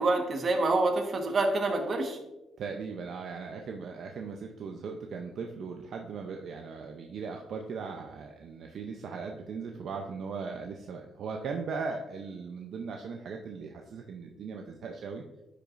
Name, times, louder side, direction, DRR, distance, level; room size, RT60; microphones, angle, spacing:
voice 1, 0.0-2.2, right 2 dB, 45° right, 4 dB, 1.3 m, -27 dB
voice 2, 2.6-15.2, right 5 dB, 65° right, 3 dB, 0.6 m, -38 dB
10.0 x 5.0 x 2.5 m, 0.97 s
cardioid pair, 90°, 0 cm